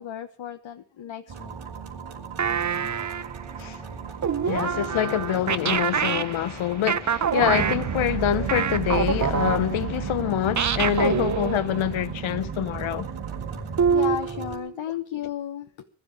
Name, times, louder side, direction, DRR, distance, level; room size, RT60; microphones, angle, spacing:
voice 1, 0.0-1.6 13.9-15.9, left 10 dB, 70° left, 1.2 m, -34 dB
sound 1, 1.3-14.6, right 5 dB, 90° right, 4.6 m, -40 dB
sound 2, 2.4-3.4 4.2-10.2 10.6-11.9 13.8-14.7, right 7 dB, 40° right, 0.7 m, -26 dB
voice 2, 4.4-13.1, left 11 dB, 85° left, 0.7 m, -26 dB
sound 3, 7.4-14.0, right 7 dB, 55° right, 1.3 m, -32 dB
21.0 x 13.0 x 4.7 m
wide cardioid pair, 100°, 47 cm